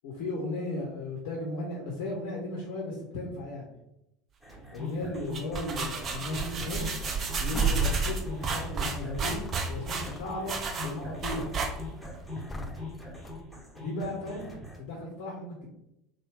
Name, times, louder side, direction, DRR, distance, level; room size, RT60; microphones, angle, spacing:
voice 1, 0.0-3.7 4.7-7.1 7.4-11.5 13.8-15.7, left 2 dB, 60° left, -1 dB, 0.7 m, -36 dB
sound 1, 4.4-14.8, left 2 dB, ahead, 1.0 m, -42 dB
sound 2, 5.1-12.1, right 4 dB, 35° right, 0.6 m, -31 dB
sound 3, 7.5-8.1 8.5-13.4, left 2 dB, 15° left, 0.3 m, -42 dB
3.2 x 2.3 x 3.4 m, 0.85 s
figure-of-eight pair, 75°, 0 cm